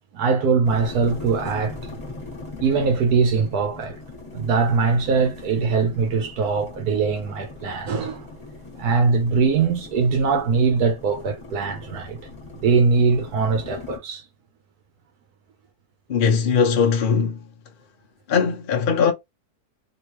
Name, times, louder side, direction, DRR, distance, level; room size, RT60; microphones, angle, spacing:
voice 1, 0.1-1.8 2.6-4.0 4.3-8.3 8.8-12.2 12.6-14.2, right 5 dB, 90° right, 1.3 m, -21 dB
sound 1, 0.6-14.0, left 3 dB, 25° left, 0.9 m, -39 dB
voice 2, 16.1-17.4 18.3-19.1, left 6 dB, 55° left, 0.6 m, -20 dB
3.1 x 2.9 x 3.0 m
omnidirectional pair, 1.6 m